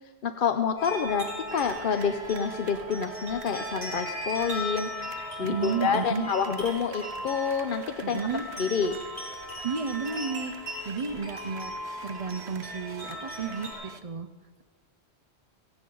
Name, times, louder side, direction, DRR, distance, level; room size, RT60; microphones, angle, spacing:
voice 1, 0.2-8.3 8.5-9.0, left 6 dB, 55° left, 7 dB, 0.7 m, -28 dB
sound 1, 0.8-13.7, left 1 dB, 25° left, 4.3 m, -38 dB
sound 2, 1.5-14.0, right 7 dB, 80° right, 1.1 m, -46 dB
voice 2, 5.4-6.3 8.0-8.4 9.6-10.5 10.9-11.7 12.0-14.3, right 5 dB, 45° right, 9 dB, 0.5 m, -32 dB
17.0 x 16.0 x 3.9 m, 1.5 s
omnidirectional pair, 1.1 m